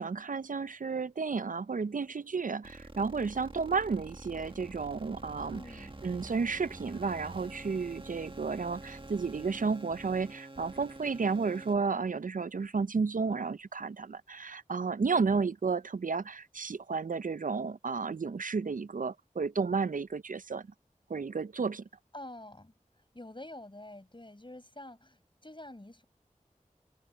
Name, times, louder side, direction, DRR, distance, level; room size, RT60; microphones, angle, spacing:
voice 1, 0.0-5.6 6.0-20.6 21.1-21.8, right 5 dB, 75° right, 0.5 m, -32 dB
sound 1, 2.6-11.7, right 2 dB, 40° right, 1.6 m, -47 dB
voice 2, 5.5-5.9 22.1-22.7 23.1-26.0, left 1 dB, 35° left, 6.5 m, -47 dB
wide cardioid pair, 45°, 14 cm